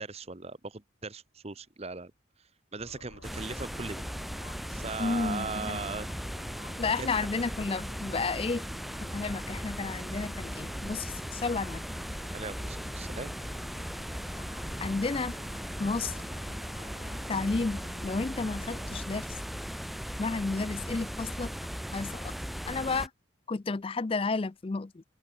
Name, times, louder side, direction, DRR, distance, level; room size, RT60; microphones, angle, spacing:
voice 1, 0.0-2.1 2.4-4.0 4.7-6.1 7.0-7.3 12.3-13.3, right 4 dB, 30° right, 1.0 m, -39 dB
sound 1, 2.8-19.0, left 2 dB, 75° left, 3.7 m, -52 dB
sound 2, 3.2-23.1, equal, ahead, 0.8 m, -38 dB
voice 2, 5.0-5.8 6.8-8.7 9.0-11.8 14.8-15.4 15.8-16.2 17.3-19.3 20.2-21.5 21.9-22.3 22.7-23.1 23.5-25.0, left 3 dB, 25° left, 0.4 m, -32 dB
open air
head